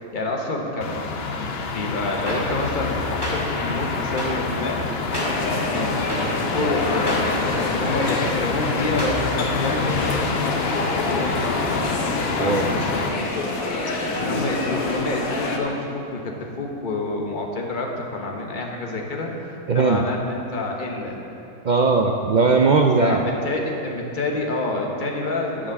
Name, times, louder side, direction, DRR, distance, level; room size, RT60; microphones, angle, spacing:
voice 1, 0.1-4.8 5.7-11.6 12.3-13.1 13.6-13.7 14.0-19.3 19.7-21.2 23.0-25.7, left 2 dB, 40° left, 0 dB, 1.3 m, -28 dB
sound 1, 0.8-13.1, left 4 dB, 55° left, 0.9 m, -27 dB
sound 2, 2.3-2.4 3.2-3.3 4.2-4.3 5.1-5.3 6.1-6.2 7.1-7.2 8.0-8.1 9.0-9.1, right 1 dB, 15° right, 2.3 m, -29 dB
sound 3, 5.1-15.6, left 2 dB, 85° left, 1.5 m, -27 dB
voice 2, 19.7-20.0 21.6-23.2, right 4 dB, 60° right, 2 dB, 0.4 m, -18 dB
8.9 x 7.3 x 7.2 m, 2.8 s
omnidirectional pair, 1.4 m